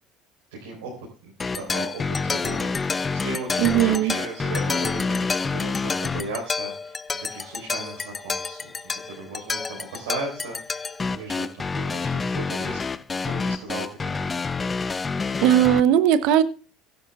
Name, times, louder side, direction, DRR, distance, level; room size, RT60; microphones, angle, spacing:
voice 1, 0.6-12.8 13.1-14.4, right 3 dB, 80° right, 4.5 m, -37 dB
sound 1, 1.4-15.8, left 4 dB, 25° left, 0.6 m, -28 dB
voice 2, 3.6-4.1 15.4-16.4, right 11 dB, 65° right, 0.8 m, -18 dB
15.5 x 11.5 x 2.4 m
hypercardioid pair, 70°, 0 cm